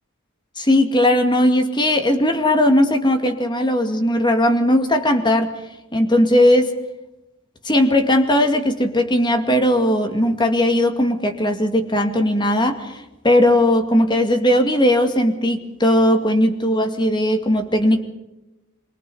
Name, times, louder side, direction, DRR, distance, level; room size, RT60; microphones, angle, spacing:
voice 1, 0.6-5.5 5.9-6.7 7.6-18.0, left 1 dB, 20° left, 5 dB, 2.2 m, -18 dB
26.5 x 23.0 x 5.6 m, 0.99 s
head